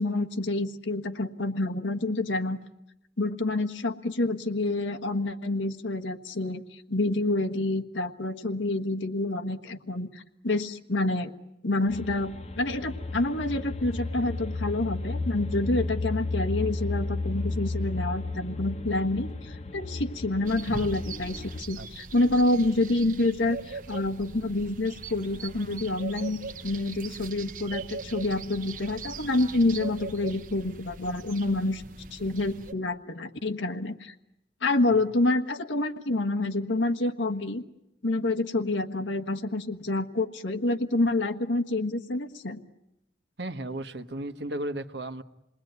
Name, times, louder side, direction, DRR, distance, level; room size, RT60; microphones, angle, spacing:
voice 1, 0.0-2.6 3.2-11.3 11.6-26.4 26.6-31.8 32.1-34.1 34.6-37.6 38.0-42.6, left 2 dB, 85° left, 4 dB, 1.5 m, -28 dB
sound 1, 11.9-21.6, left 2 dB, 35° left, 1.1 m, -33 dB
sound 2, 20.4-32.7, right 4 dB, 45° right, 1.0 m, -40 dB
voice 2, 43.4-45.2, right 1 dB, 70° right, 10 dB, 1.3 m, -34 dB
28.5 x 20.5 x 9.4 m, 0.87 s
head